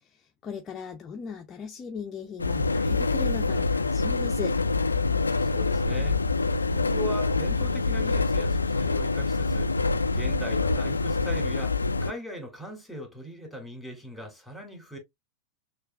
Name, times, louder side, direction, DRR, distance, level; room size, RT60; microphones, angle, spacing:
voice 1, 0.0-4.6, left 6 dB, 30° left, 0.7 m, -38 dB
sound 1, 2.4-12.1, left 3 dB, 85° left, 0.3 m, -26 dB
sound 2, 2.9-4.1, right 2 dB, 45° right, 1.9 m, -54 dB
voice 2, 5.4-6.2 6.7-15.0, equal, ahead, 2.5 m, -39 dB
6.5 x 2.5 x 2.3 m
figure-of-eight pair, 90°, 0 cm